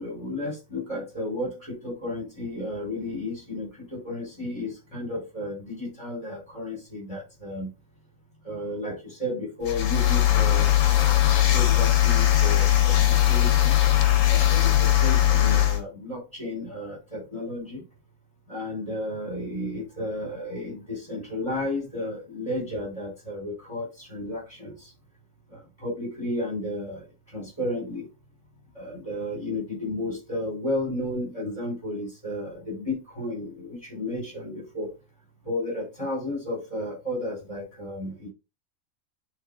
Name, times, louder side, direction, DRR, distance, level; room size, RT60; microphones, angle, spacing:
voice 1, 0.0-7.7 8.4-13.8 14.3-17.8 18.5-24.9 25.5-28.1 28.7-34.9 35.4-38.3, left 1 dB, 20° left, 4.5 m, -33 dB
sound 1, 9.6-15.8, left 13 dB, 70° left, 1.3 m, -20 dB
11.0 x 3.7 x 2.7 m
omnidirectional pair, 1.5 m